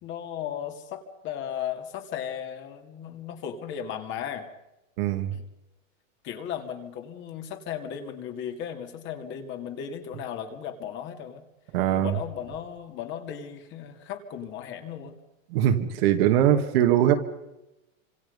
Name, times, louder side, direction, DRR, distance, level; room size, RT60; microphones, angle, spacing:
voice 1, 0.0-4.5 5.3-5.4 6.2-11.4 12.0-15.1, left 9 dB, 30° left, 6 dB, 2.5 m, -36 dB
voice 2, 5.0-5.3 11.7-12.2 15.5-17.2, right 11 dB, 50° right, 7 dB, 2.3 m, -21 dB
28.5 x 26.0 x 5.4 m, 0.92 s
supercardioid pair, 160°, 40 cm